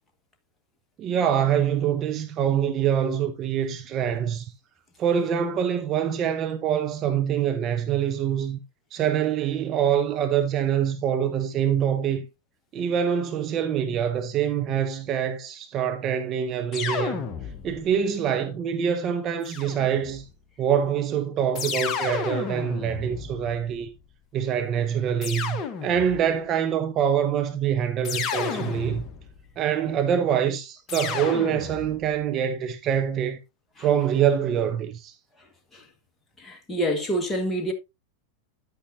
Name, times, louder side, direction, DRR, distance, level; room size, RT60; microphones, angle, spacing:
voice 1, 1.0-4.5 5.0-8.6 8.9-12.2 12.7-17.3 17.6-20.3 20.6-23.9 24.3-29.0 29.6-33.4 33.8-35.1, right 8 dB, 30° right, 0.9 m, -25 dB
sound 1, 16.7-17.9 19.4-20.3 21.5-23.9 25.2-26.3 28.0-29.4 30.9-32.1, left 6 dB, 30° left, 1.2 m, -32 dB
voice 2, 36.4-37.7, right 1 dB, 10° left, 1.7 m, -27 dB
10.0 x 8.3 x 2.7 m
figure-of-eight pair, 90°, 0 cm